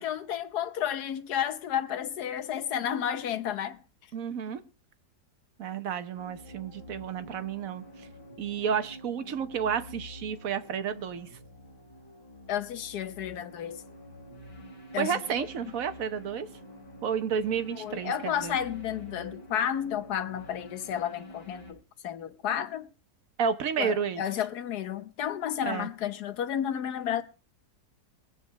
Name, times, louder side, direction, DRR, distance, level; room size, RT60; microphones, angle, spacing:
voice 1, 0.0-3.8 12.5-13.8 14.9-15.2 17.7-21.8 22.0-22.9 23.8-27.2, left 9 dB, 70° left, 1.4 m, -32 dB
voice 2, 4.1-4.6 5.6-8.1 8.4-11.3 15.0-16.5 17.0-18.6 23.4-24.2 25.6-25.9, right 7 dB, 55° right, 1.3 m, -31 dB
sound 1, 6.1-21.7, equal, 30° left, 4.7 m, -48 dB
22.0 x 7.5 x 4.6 m
omnidirectional pair, 1.8 m